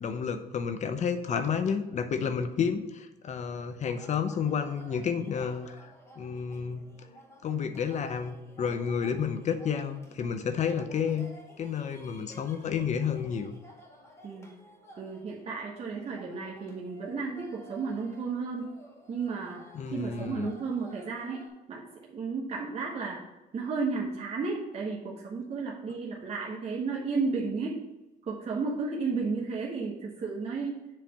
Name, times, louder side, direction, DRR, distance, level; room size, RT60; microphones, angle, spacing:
voice 1, 0.0-6.8 7.4-11.3 11.6-13.5 19.7-20.5, left 7 dB, 45° left, 9 dB, 0.7 m, -31 dB
sound 1, 3.6-21.5, equal, 15° left, 2.0 m, -54 dB
voice 2, 15.0-18.7 19.1-19.6 19.9-21.8 22.1-23.2 23.5-27.8 28.3-30.8, right 4 dB, 40° right, -3 dB, 1.2 m, -33 dB
7.6 x 3.3 x 5.2 m, 0.99 s
cardioid pair, 110°, 17 cm